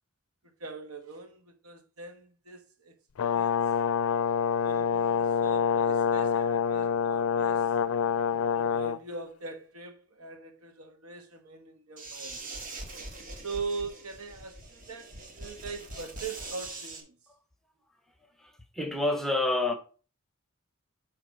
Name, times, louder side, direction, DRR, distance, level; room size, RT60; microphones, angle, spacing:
voice 1, 0.4-3.6 4.6-7.7 8.5-12.4 13.4-17.2, right 4 dB, 80° right, 1.4 m, -41 dB
Brass instrument, 3.2-9.0, left 7 dB, 70° left, 0.4 m, -26 dB
sound 1, 12.0-17.0, right 2 dB, 40° right, 1.6 m, -42 dB
voice 2, 18.4-19.7, left 2 dB, ahead, 1.0 m, -28 dB
9.4 x 3.3 x 5.4 m
head